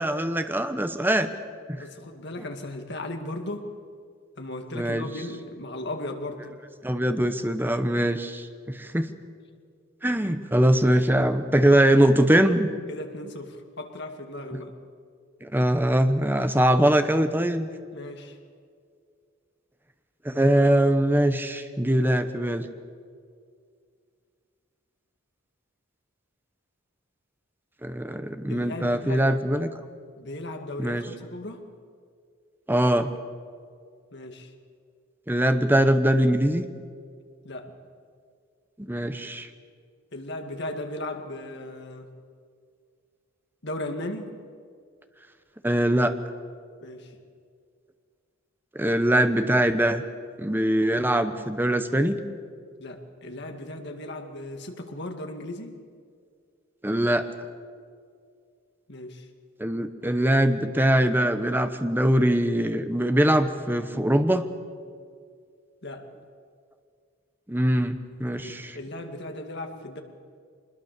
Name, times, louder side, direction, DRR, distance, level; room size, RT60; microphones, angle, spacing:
voice 1, 0.0-1.3 1.7-1.8 4.7-5.1 6.8-8.5 8.8-9.1 10.0-12.7 14.5-14.6 15.4-17.7 20.2-22.7 27.8-29.8 30.8-31.0 32.7-33.1 35.3-36.6 38.9-39.5 45.6-46.1 48.7-50.0 50.4-52.2 56.8-57.3 59.6-64.5 67.5-68.8, right 1 dB, 10° right, 9 dB, 1.0 m, -22 dB
voice 2, 1.8-3.7 4.4-6.5 11.7-12.1 12.9-14.7 17.9-18.4 28.5-29.4 30.2-31.6 34.1-34.5 37.4-37.7 40.1-42.1 43.6-44.4 46.8-47.1 52.8-55.8 58.9-59.2 65.8-66.1 68.4-70.0, left 1 dB, 55° left, 5 dB, 2.1 m, -36 dB
24.5 x 21.0 x 6.8 m, 2.1 s
head